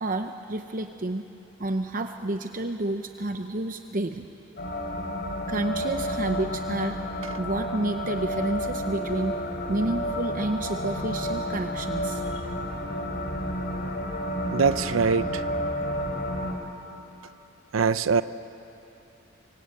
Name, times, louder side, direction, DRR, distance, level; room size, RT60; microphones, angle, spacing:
voice 1, 0.0-1.2 1.6-4.3 5.5-7.0 7.4-9.4 9.7-12.2, right 2 dB, 40° right, 6 dB, 0.8 m, -30 dB
sound 1, 4.6-16.5, equal, 50° left, 3.4 m, -31 dB
voice 2, 14.5-15.5 17.7-18.2, right 5 dB, 80° right, 13 dB, 0.6 m, -23 dB
25.5 x 25.0 x 8.4 m, 2.9 s
head